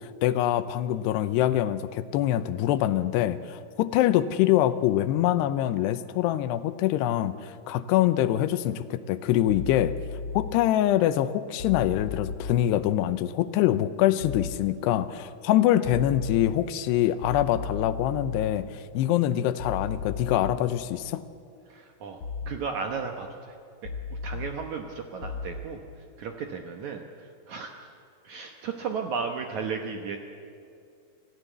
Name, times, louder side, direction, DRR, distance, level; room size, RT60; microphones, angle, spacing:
voice 1, 0.2-10.0 10.3-21.2, left 12 dB, 85° left, 13 dB, 2.9 m, -24 dB
sound 1, 9.5-10.5 11.6-12.5 14.2-14.5 15.8-16.5 17.2-18.5 19.6-20.5 22.2-22.5 23.8-24.5 25.2-25.6, left 5 dB, 60° left, 2.1 m, -35 dB
voice 2, 21.7-22.2 22.5-23.5 24.2-25.8 26.2-27.7 28.2-30.2, right 5 dB, 70° right, 4 dB, 1.8 m, -34 dB
26.5 x 15.5 x 8.2 m, 2.4 s
omnidirectional pair, 4.8 m